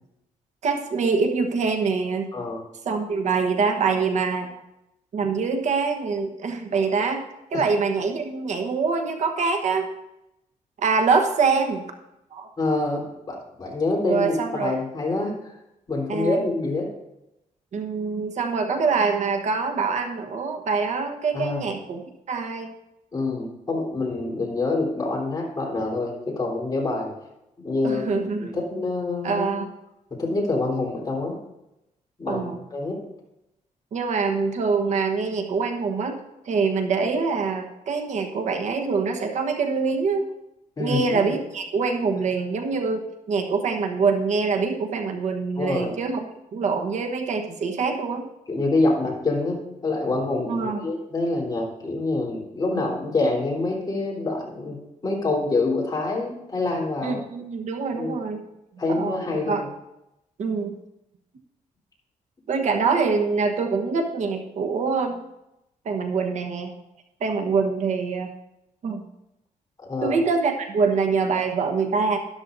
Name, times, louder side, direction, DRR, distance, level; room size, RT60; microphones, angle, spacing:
voice 1, 0.6-2.3 2.8-4.6 5.1-7.2 7.5-9.9 10.8-11.8 12.3-12.5 14.0-14.7 16.1-16.4 17.7-22.0 22.3-22.7 27.8-28.6 29.2-29.7 32.3-32.6 33.9-36.2 36.4-40.3 40.8-48.3 50.5-50.9 57.0-58.4 58.9-59.6 60.4-60.8 62.5-65.2 65.8-66.7 67.2-68.3 68.8-69.1 70.0-72.2, right 4 dB, 65° right, 5 dB, 1.2 m, -24 dB
voice 2, 2.3-2.6 7.5-7.6 12.6-15.5 15.9-16.9 21.3-21.6 23.1-27.1 27.6-28.0 28.4-29.6 30.1-31.4 32.2-33.0 40.8-41.3 45.6-45.9 48.5-57.2 57.9-58.2 58.8-59.7 69.8-70.2, left 2 dB, 30° left, -3 dB, 3.6 m, -26 dB
12.5 x 12.0 x 2.6 m, 0.88 s
cardioid pair, 130°, 13 cm